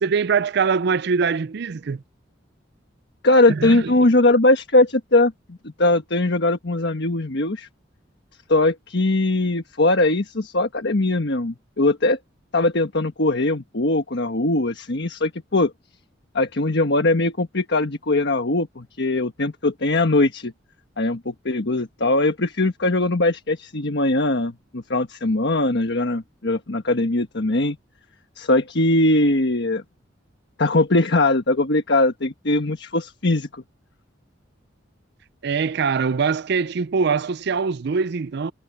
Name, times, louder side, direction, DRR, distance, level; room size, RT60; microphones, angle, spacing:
voice 1, 0.0-2.0 3.5-3.9 35.4-38.5, right 5 dB, 60° right, 0.5 m, -23 dB
voice 2, 3.2-7.7 8.5-12.2 12.5-15.7 16.3-20.5 21.0-27.8 28.4-29.8 30.6-33.6, left 2 dB, 65° left, 1.4 m, -20 dB
head